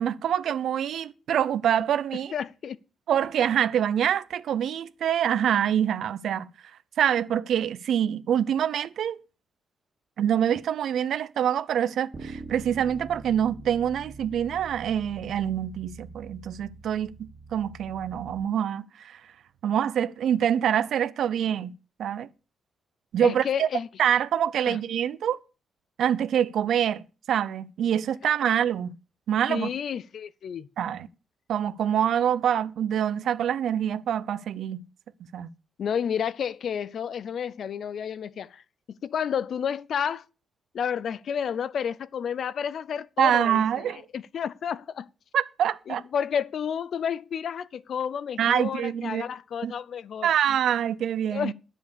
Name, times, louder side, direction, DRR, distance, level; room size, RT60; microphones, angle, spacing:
voice 1, 0.0-2.3 3.1-6.5 7.0-9.2 10.2-19.2 19.6-21.7 22.0-22.3 23.1-23.7 24.0-25.4 26.0-27.0 27.3-28.9 29.3-29.7 30.8-31.1 31.5-34.8 35.3-35.5 43.2-44.0 45.3-46.0 48.4-49.2 49.6-49.7 50.2-51.5, right 9 dB, 65° right, 0.7 m, -25 dB
voice 2, 2.3-2.8 23.2-23.9 24.7-24.8 29.5-30.7 35.8-38.6 38.9-40.2 40.7-43.8 44.1-45.1 45.9-50.3 51.3-51.5, left 8 dB, 50° left, 0.5 m, -30 dB
Bass guitar, 12.1-18.4, right 3 dB, 30° right, 2.6 m, -44 dB
10.5 x 7.3 x 6.8 m
wide cardioid pair, 175°, 0 cm